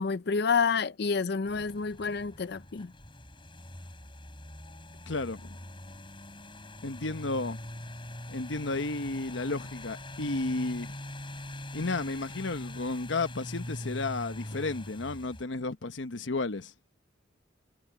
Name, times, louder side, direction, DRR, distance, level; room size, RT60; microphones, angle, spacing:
voice 1, 0.0-2.9, left 5 dB, 60° left, 0.6 m, -29 dB
sound 1, 1.4-15.4, left 1 dB, 30° left, 7.6 m, -43 dB
voice 2, 5.1-5.6 6.8-7.6 8.3-10.9 11.7-16.7, left 3 dB, 85° left, 1.0 m, -33 dB
head